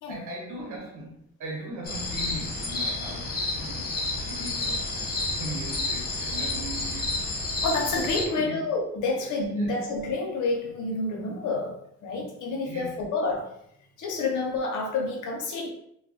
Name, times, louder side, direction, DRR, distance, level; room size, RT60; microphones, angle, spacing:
voice 1, 0.1-7.2 8.2-8.7 9.2-9.3 9.5-9.7 12.6-13.1, right 1 dB, 80° right, 1.1 m, -39 dB
sound 1, 1.8-8.2, left 2 dB, 30° left, 0.8 m, -30 dB
voice 2, 7.6-13.5 14.0-15.7, left 3 dB, 85° left, 0.8 m, -29 dB
2.3 x 2.2 x 3.6 m
cardioid pair, 90°, 30 cm